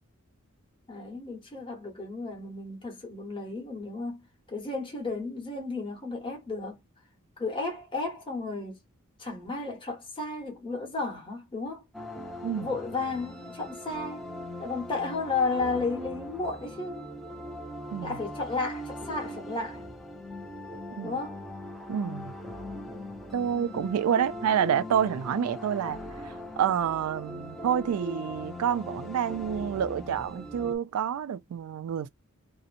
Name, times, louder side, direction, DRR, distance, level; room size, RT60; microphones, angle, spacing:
voice 1, 0.9-4.2 4.5-6.8 7.4-8.8 9.2-11.8 12.5-14.2 14.6-17.1 18.0-19.8 21.0-21.4, left 3 dB, 20° left, 1.0 m, -33 dB
sound 1, 11.9-30.8, left 1 dB, ahead, 0.4 m, -40 dB
voice 2, 21.9-22.3 23.3-26.0 26.6-32.1, right 8 dB, 75° right, 0.3 m, -28 dB
2.8 x 2.1 x 2.4 m
head